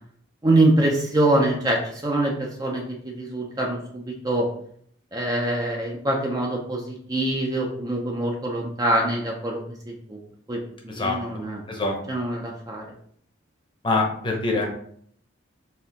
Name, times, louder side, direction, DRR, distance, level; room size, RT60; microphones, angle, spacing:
voice 1, 0.4-4.5 5.1-10.2 10.5-11.6 12.1-12.9, right 1 dB, 20° right, -1 dB, 0.5 m, -24 dB
voice 2, 13.8-14.7, left 3 dB, 25° left, 0 dB, 0.8 m, -24 dB
4.2 x 2.7 x 3.9 m, 0.63 s
head